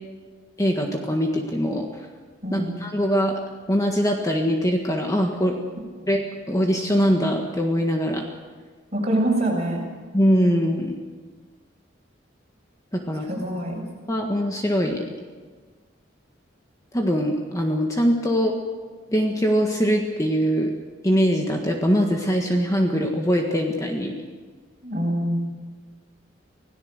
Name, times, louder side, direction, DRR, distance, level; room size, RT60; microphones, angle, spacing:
voice 1, 0.6-1.8 2.5-3.3 3.7-5.6 6.1-6.2 6.5-8.3 10.1-11.0 12.9-13.3 14.1-15.0 16.9-18.5 19.1-20.7 21.0-24.1, equal, 20° left, 2 dB, 1.6 m, -22 dB
voice 2, 8.9-9.8 13.3-13.9 24.8-25.4, right 1 dB, 35° right, -1 dB, 6.6 m, -24 dB
25.5 x 17.0 x 6.6 m, 1.5 s
head